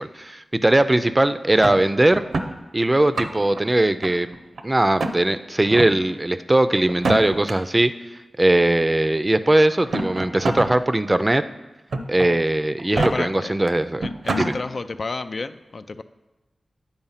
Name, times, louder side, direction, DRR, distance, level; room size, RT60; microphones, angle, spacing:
voice 1, 0.0-2.2 2.7-4.3 4.6-7.9 8.4-11.4 12.1-14.1 14.4-14.5, right 1 dB, 25° right, 11 dB, 0.4 m, -19 dB
sound 1, 1.6-2.5 3.0-3.6 4.0-4.6 5.0-5.2 5.7-5.9 6.9-7.5 8.6-8.7 9.7-10.7 11.1-11.2 11.9-12.3 12.8-13.1 13.7-13.8 14.0-14.5, right 2 dB, 80° right, 0.6 m, -25 dB
voice 2, 12.9-13.5 14.0-16.0, left 3 dB, 60° left, 11 dB, 0.3 m, -31 dB
9.0 x 4.4 x 5.6 m, 1.1 s
cardioid pair, 60°, 0 cm